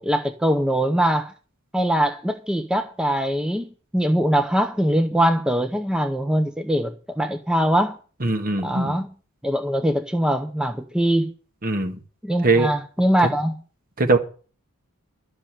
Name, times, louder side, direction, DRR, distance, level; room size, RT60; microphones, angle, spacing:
voice 1, 0.0-1.3 1.7-8.0 8.6-9.1 9.4-11.3 12.2-13.6, equal, 5° right, 0.7 m, -22 dB
voice 2, 8.2-8.9 11.6-12.0 12.4-12.7 14.0-14.2, right 2 dB, 40° right, 1.6 m, -20 dB
12.0 x 6.5 x 9.0 m
head